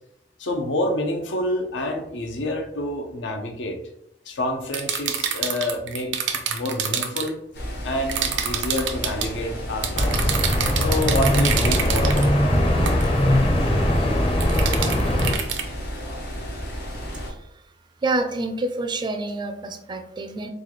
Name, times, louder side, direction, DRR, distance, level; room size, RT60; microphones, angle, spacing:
voice 1, 0.4-3.8 4.3-7.4 7.8-10.3 10.8-12.4, left 1 dB, 90° left, 3 dB, 0.7 m, -28 dB
sound 1, 4.7-7.3 8.1-9.3 9.8-12.3 12.9-13.1 14.4-15.6, right 8 dB, 80° right, 0.5 m, -27 dB
sound 2, 7.5-17.3, equal, 60° left, 0.9 m, -33 dB
sound 3, 9.9-15.3, left 1 dB, 30° left, 0.6 m, -20 dB
voice 2, 18.0-20.5, right 2 dB, 25° right, 7 dB, 0.3 m, -27 dB
4.1 x 2.3 x 3.0 m, 0.74 s
head